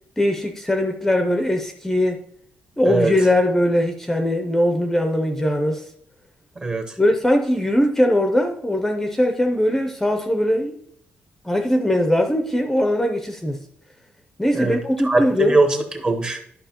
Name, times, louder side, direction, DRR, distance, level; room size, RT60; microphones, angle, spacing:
voice 1, 0.2-2.2 2.8-5.9 7.0-10.8 11.4-13.6 14.4-15.6, left 1 dB, 5° left, 0.6 m, -20 dB
voice 2, 6.6-6.9 14.5-14.8 15.0-16.4, right 3 dB, 25° right, 0.9 m, -21 dB
11.0 x 5.8 x 2.9 m
cardioid pair, 155°, 4 cm